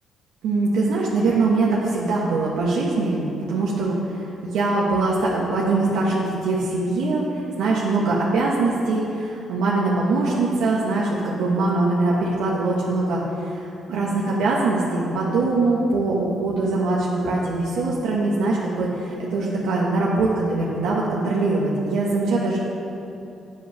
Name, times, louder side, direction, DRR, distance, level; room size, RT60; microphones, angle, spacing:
voice 1, 0.4-22.6, right 3 dB, 90° right, -5 dB, 1.2 m, -22 dB
8.8 x 8.0 x 5.7 m, 2.9 s
cardioid pair, 90°, 0 cm